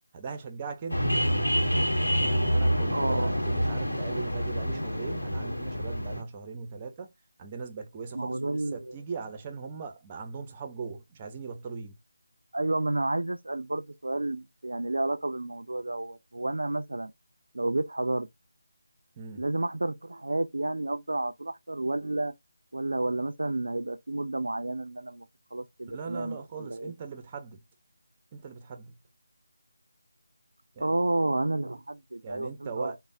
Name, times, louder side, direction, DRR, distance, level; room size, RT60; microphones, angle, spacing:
voice 1, 0.1-1.2 2.0-7.1 7.4-8.4 8.7-12.0 19.1-19.4 25.9-27.6 28.3-29.0 30.7-31.0 32.2-33.0, right 5 dB, 20° right, 0.5 m, -40 dB
sound 1, 0.9-6.2, equal, 85° left, 0.8 m, -27 dB
voice 2, 2.9-3.4 8.1-8.9 12.5-17.1 17.5-18.3 19.4-22.3 22.7-26.9 30.8-32.9, right 2 dB, 75° right, 0.3 m, -31 dB
3.3 x 2.0 x 2.5 m
figure-of-eight pair, 160°, 0 cm